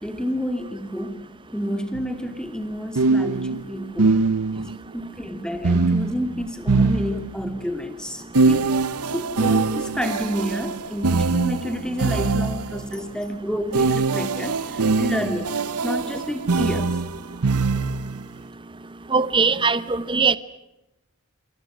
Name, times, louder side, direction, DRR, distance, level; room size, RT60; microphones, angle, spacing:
voice 1, 0.0-4.3 4.6-8.7 9.0-17.0, equal, 5° left, 2.4 m, -30 dB
sound 1, 1.9-2.1 2.9-4.8 5.6-7.6 8.3-12.9 13.7-18.2, right 3 dB, 90° right, 0.9 m, -23 dB
voice 2, 19.1-20.4, right 5 dB, 20° right, 0.9 m, -20 dB
28.5 x 27.5 x 6.2 m
head